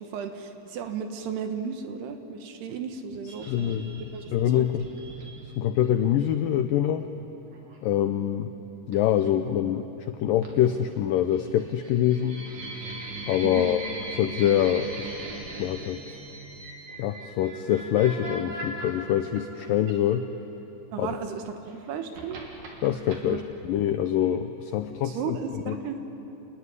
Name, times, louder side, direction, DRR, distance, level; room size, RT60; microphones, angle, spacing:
voice 1, 0.0-4.3 4.5-4.7 13.4-13.7 20.9-22.4 23.2-23.4 25.0-26.0, right 6 dB, 75° right, 6 dB, 3.3 m, -35 dB
sound 1, 3.3-5.9 7.5-7.8 8.9-9.2 10.4-11.0 11.3-20.4 21.4-23.2, right 1 dB, 50° right, 4.1 m, -40 dB
voice 2, 3.5-4.9 5.4-7.1 7.8-8.5 8.9-12.4 13.3-13.8 14.2-15.1 15.6-16.2 17.0-20.3 21.0-21.2 22.8-25.4 25.7-25.8, left 11 dB, 85° left, 8 dB, 1.9 m, -25 dB
28.5 x 19.0 x 9.9 m, 3.0 s
omnidirectional pair, 4.9 m